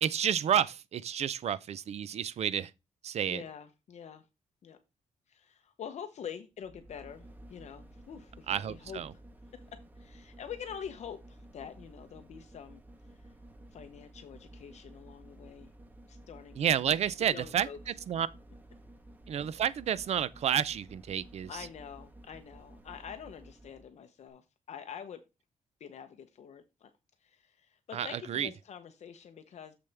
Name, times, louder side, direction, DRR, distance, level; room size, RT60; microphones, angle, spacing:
voice 1, 0.0-2.7 3.0-3.4 8.5-9.1 16.6-17.7 18.1-18.3 19.3-21.5 27.9-28.5, right 9 dB, 55° right, 0.5 m, -30 dB
voice 2, 3.3-4.3 4.6-4.8 5.3-9.0 9.5-12.8 13.2-13.3 13.7-15.7 16.1-17.8 21.5-25.2 25.8-26.9 27.2-29.7, left 8 dB, 60° left, 0.8 m, -46 dB
sound 1, 6.5-23.9 24.3-24.4, right 1 dB, 15° right, 0.8 m, -53 dB
6.9 x 6.7 x 3.4 m
wide cardioid pair, 175°, 13 cm